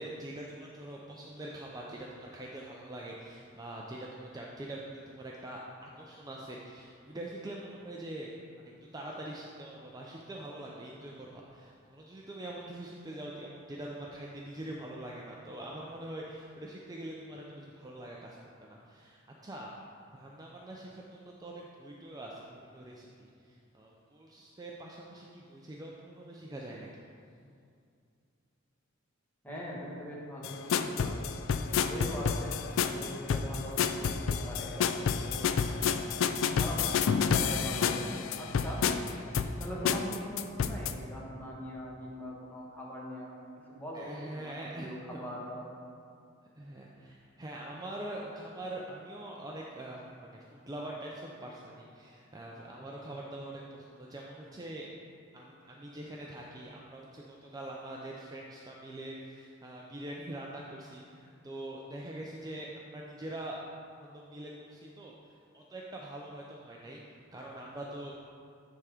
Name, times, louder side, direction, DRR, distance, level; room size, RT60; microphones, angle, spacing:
voice 1, 0.0-19.7 20.1-27.0 43.9-45.2 46.6-54.9 55.3-63.6 64.0-67.0 67.3-68.1, right 1 dB, 20° right, -3 dB, 0.5 m, -44 dB
voice 2, 29.4-31.1 31.8-32.6 32.8-35.8 36.5-37.0 37.3-38.8 39.6-43.3 43.7-45.6, equal, 10° left, -5 dB, 1.3 m, -41 dB
sound 1, 30.4-40.9, left 6 dB, 70° left, 0.3 m, -30 dB
9.4 x 3.6 x 4.9 m, 2.4 s
head